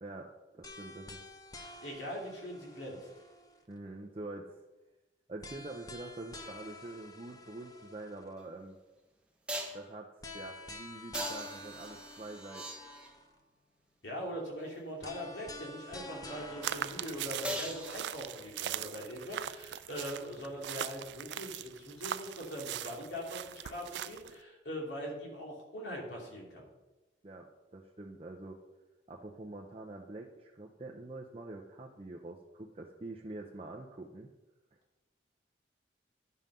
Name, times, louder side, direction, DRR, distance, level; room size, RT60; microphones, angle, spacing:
voice 1, 0.0-1.2 3.7-4.6 5.3-8.8 9.7-12.7 27.2-28.6 29.1-34.3, right 2 dB, 30° right, 0 dB, 0.6 m, -45 dB
sound 1, 0.6-3.8 5.4-8.4 10.2-13.4 15.0-18.5, left 2 dB, 20° left, 0.7 m, -49 dB
voice 2, 1.8-3.0 14.0-26.7, equal, 85° left, -2 dB, 2.7 m, -41 dB
sound 2, 8.4-8.5 9.5-9.9 11.1-13.3 17.4-18.6 22.4-22.5, right 1 dB, 5° right, 1.0 m, -40 dB
sound 3, 16.6-24.4, right 11 dB, 80° right, 0.3 m, -41 dB
10.5 x 5.6 x 5.5 m, 1.1 s
head